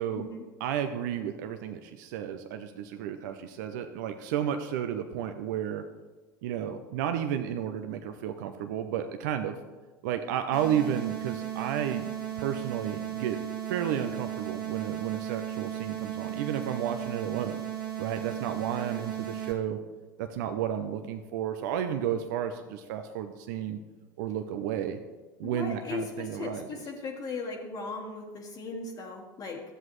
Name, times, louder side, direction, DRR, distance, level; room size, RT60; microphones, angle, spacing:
voice 1, 0.6-5.8 6.4-9.6 10.0-12.1 12.4-13.4 13.7-17.6 18.0-19.8 20.2-23.8 24.2-25.0 25.4-26.7, right 9 dB, 70° right, 7 dB, 0.6 m, -32 dB
sound 1, 10.5-19.5, right 11 dB, 90° right, 1.7 m, -36 dB
voice 2, 25.4-29.6, left 3 dB, 40° left, -1 dB, 1.4 m, -37 dB
13.0 x 7.7 x 3.1 m, 1.3 s
hypercardioid pair, 80°, 10 cm